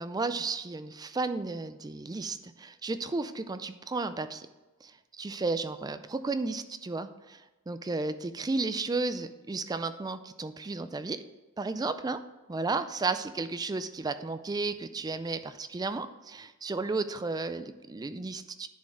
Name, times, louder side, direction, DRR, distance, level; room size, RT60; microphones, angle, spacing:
voice 1, 0.0-4.5 4.8-4.9 5.2-7.4 7.7-11.2 11.6-12.2 12.5-18.7, right 3 dB, 20° right, 11 dB, 0.3 m, -33 dB
10.5 x 4.5 x 4.8 m, 1.2 s
head